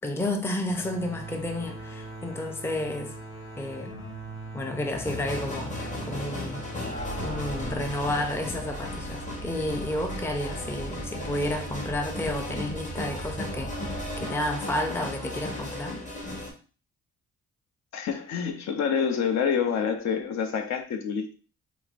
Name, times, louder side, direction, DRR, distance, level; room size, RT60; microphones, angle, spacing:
voice 1, 0.0-3.2 3.6-4.0 4.5-6.7 7.2-16.0, left 1 dB, 10° left, 0.5 m, -31 dB
sound 1, 0.7-10.2, right 2 dB, 45° left, 1.2 m, -42 dB
sound 2, 4.9-16.5, left 2 dB, 25° left, 1.0 m, -36 dB
sound 3, 6.9-14.2, right 3 dB, 85° left, 0.9 m, -40 dB
voice 2, 17.9-21.3, left 7 dB, 65° left, 0.6 m, -27 dB
4.6 x 2.1 x 2.5 m
cardioid pair, 90°, 30 cm